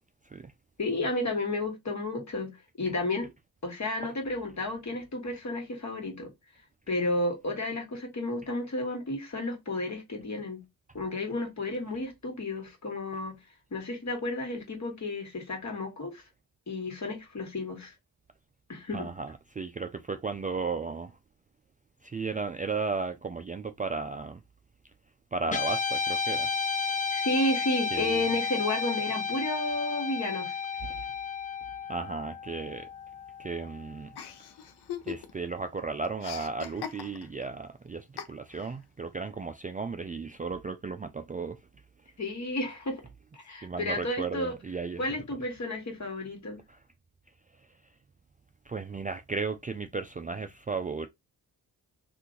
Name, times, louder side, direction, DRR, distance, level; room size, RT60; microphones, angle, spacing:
voice 1, 0.8-3.3 3.6-6.3 6.9-10.6 10.9-13.3 13.7-16.2 16.7-17.9 18.7-19.1 27.1-30.6 42.2-43.0 43.3-44.5 45.0-46.6, left 2 dB, 45° left, 1.6 m, -32 dB
voice 2, 18.9-21.2 22.0-24.4 25.3-26.5 27.9-28.3 30.8-31.1 31.9-32.9 33.4-34.1 35.0-41.6 43.6-45.0 46.7-46.8 48.7-51.1, right 4 dB, 20° right, 0.3 m, -35 dB
Guitar, 25.5-34.0, left 5 dB, 20° left, 0.6 m, -32 dB
Chuckle chortle, 34.2-35.5 35.8-37.5 38.2-38.8, left 9 dB, 85° left, 0.6 m, -40 dB
2.8 x 2.5 x 3.7 m
cardioid pair, 70°, 38 cm